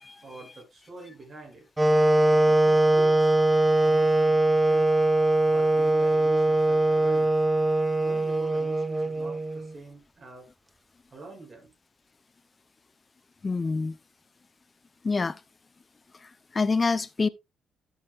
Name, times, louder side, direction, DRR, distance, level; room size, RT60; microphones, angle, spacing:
voice 1, 0.2-1.7 2.5-3.3 3.8-4.9 5.5-7.4 8.0-10.5 11.1-11.7, right 2 dB, 35° right, 7.1 m, -46 dB
Wind instrument woodwind instrument, 1.8-9.7, right 2 dB, 15° right, 0.6 m, -22 dB
voice 2, 13.4-14.0 15.0-15.4 16.5-17.3, left 4 dB, 30° left, 0.7 m, -26 dB
13.0 x 8.0 x 2.4 m
cardioid pair, 90°, 0 cm